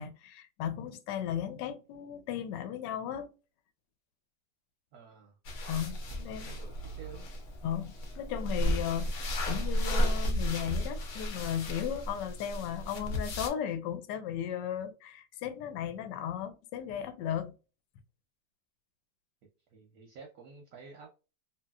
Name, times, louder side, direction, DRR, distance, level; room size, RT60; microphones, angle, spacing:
voice 1, 0.0-3.3 5.7-6.6 7.6-9.1 9.5-17.5, left 9 dB, 75° left, 1.1 m, -36 dB
voice 2, 4.9-5.4 6.1-7.3 19.7-21.1, right 5 dB, 65° right, 1.0 m, -51 dB
sound 1, 5.5-13.5, equal, 60° left, 0.8 m, -33 dB
2.9 x 2.6 x 2.2 m
omnidirectional pair, 2.0 m